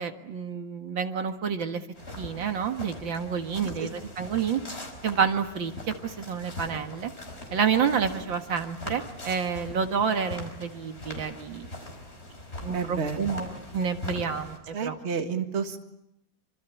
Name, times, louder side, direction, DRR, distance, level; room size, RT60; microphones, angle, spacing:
voice 1, 0.0-1.8 2.2-4.6 5.0-5.7 6.0-7.1 7.5-11.7 12.6-15.0, right 6 dB, 75° right, 6 dB, 2.4 m, -29 dB
sound 1, 2.0-14.6, left 2 dB, 30° left, 5.2 m, -41 dB
voice 2, 12.7-13.2 14.7-15.8, right 6 dB, 35° right, 6 dB, 2.0 m, -30 dB
26.5 x 26.0 x 8.3 m, 0.83 s
omnidirectional pair, 2.1 m